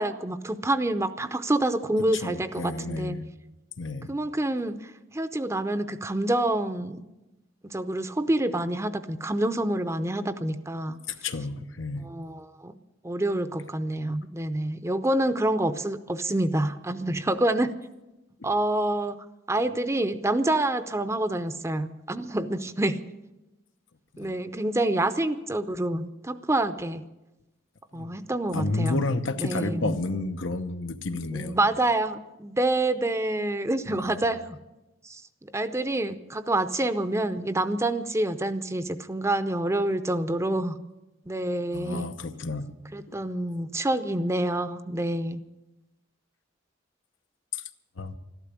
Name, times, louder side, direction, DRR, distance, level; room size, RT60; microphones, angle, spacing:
voice 1, 0.0-3.2 4.1-7.0 7.6-11.0 12.0-12.7 13.0-17.7 18.4-19.2 19.5-23.0 24.2-27.0 27.9-29.0 29.4-29.9 31.3-34.4 35.0-40.8 41.3-42.1 42.9-45.4, right 1 dB, 15° right, 11 dB, 0.6 m, -27 dB
voice 2, 2.1-3.2 3.8-4.1 11.1-12.1 18.4-18.5 24.1-24.4 27.9-28.1 28.5-31.6 33.9-34.2 41.7-42.7 43.1-43.2 47.5-47.6 48.0-48.2, left 3 dB, 90° left, 9 dB, 0.9 m, -31 dB
13.5 x 12.0 x 8.2 m, 1.0 s
head